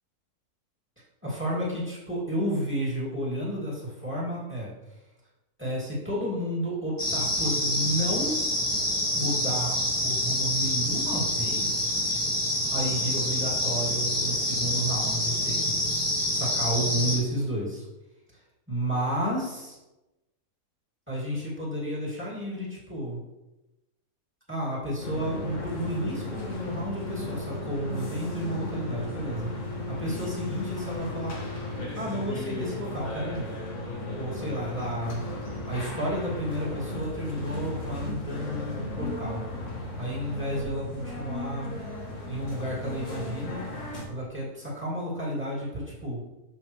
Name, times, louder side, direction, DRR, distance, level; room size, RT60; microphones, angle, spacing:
voice 1, 1.2-4.7 5.6-8.4 9.1-11.9 12.7-17.8 18.7-19.8 21.1-23.2 24.5-31.4 31.9-33.5 34.2-35.2 35.7-39.4 40.0-41.8 42.3-43.6 44.1-46.2, equal, 10° right, -7 dB, 2.3 m, -32 dB
sound 1, 7.0-17.2, left 1 dB, 15° left, 1.5 m, -27 dB
sound 2, 25.0-44.0, left 1 dB, 60° left, 1.6 m, -35 dB
7.3 x 5.6 x 3.2 m, 1.0 s
omnidirectional pair, 1.5 m